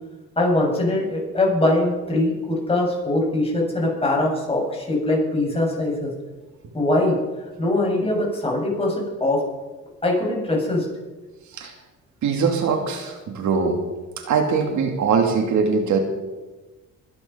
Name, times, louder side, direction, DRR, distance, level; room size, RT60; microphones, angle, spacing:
voice 1, 0.4-6.1 6.7-7.2 7.6-9.4 10.0-10.9, left 1 dB, 20° left, -2 dB, 7.2 m, -22 dB
voice 2, 12.2-13.8 14.2-16.0, right 5 dB, 70° right, 4 dB, 2.7 m, -21 dB
23.0 x 10.0 x 5.8 m, 1.2 s
cardioid pair, 90°, 30 cm